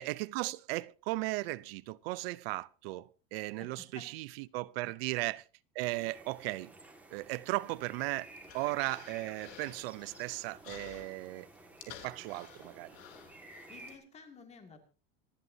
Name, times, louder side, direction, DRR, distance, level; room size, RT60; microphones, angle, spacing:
voice 1, 0.0-4.3 4.5-5.4 5.8-6.7 7.1-8.3 8.5-11.5 11.9-13.0, right 21 dB, 70° right, 0.6 m, -36 dB
voice 2, 3.6-4.1 4.8-4.9 12.9-14.8, left 5 dB, 20° left, 2.1 m, -55 dB
sound 1, 5.8-14.0, right 2 dB, 5° right, 1.8 m, -54 dB
Human voice, 7.6-13.9, left 10 dB, 70° left, 3.1 m, -54 dB
26.0 x 11.0 x 2.7 m
cardioid pair, 175°, 31 cm